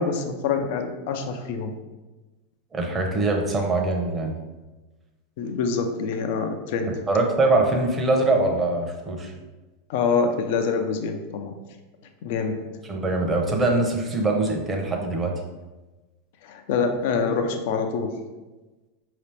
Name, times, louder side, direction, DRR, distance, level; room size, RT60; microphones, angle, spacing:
voice 1, 0.0-1.8 5.4-6.9 9.9-11.5 12.2-12.6 16.4-18.1, left 5 dB, 65° left, 5 dB, 0.5 m, -25 dB
voice 2, 2.7-4.3 7.1-9.3 12.9-15.3, right 2 dB, 20° right, 1 dB, 0.8 m, -23 dB
4.9 x 2.9 x 3.3 m, 1.2 s
hypercardioid pair, 115°, 0 cm